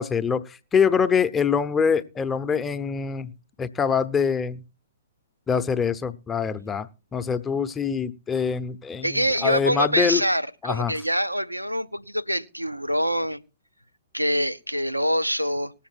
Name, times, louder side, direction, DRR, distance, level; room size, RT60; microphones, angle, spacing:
voice 1, 0.0-3.3 3.6-4.6 5.5-10.2 10.6-10.9, left 6 dB, 15° left, 0.7 m, -24 dB
voice 2, 9.0-13.4 14.1-15.7, equal, 90° right, 0.8 m, -25 dB
19.0 x 7.4 x 4.5 m
figure-of-eight pair, 115°, 0 cm